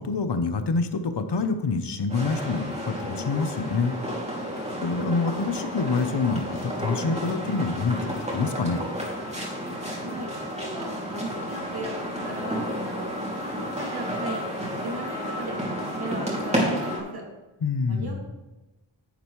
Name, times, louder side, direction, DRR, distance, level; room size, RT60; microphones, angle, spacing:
voice 1, 0.0-4.0 4.3-4.4 4.8-8.8 17.6-18.2, left 4 dB, 55° left, 9 dB, 0.9 m, -26 dB
sound 1, 2.1-17.0, equal, 15° right, 2.6 m, -31 dB
voice 2, 10.0-13.1 13.4-17.2 17.9-18.2, right 2 dB, 50° right, -1 dB, 2.5 m, -37 dB
10.5 x 8.9 x 3.2 m, 1.0 s
wide cardioid pair, 85°, 48 cm